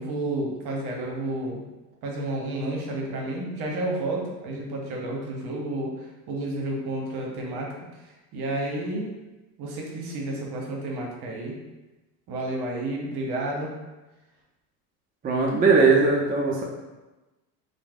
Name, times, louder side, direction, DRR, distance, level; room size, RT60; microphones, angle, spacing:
voice 1, 0.0-1.6 2.0-7.7 8.3-9.1 9.6-11.5 12.3-13.7, right 1 dB, 50° right, -1 dB, 0.9 m, -31 dB
voice 2, 15.2-16.6, right 4 dB, 20° right, -2 dB, 0.3 m, -19 dB
3.1 x 2.1 x 2.4 m, 1.1 s
hypercardioid pair, 70°, 48 cm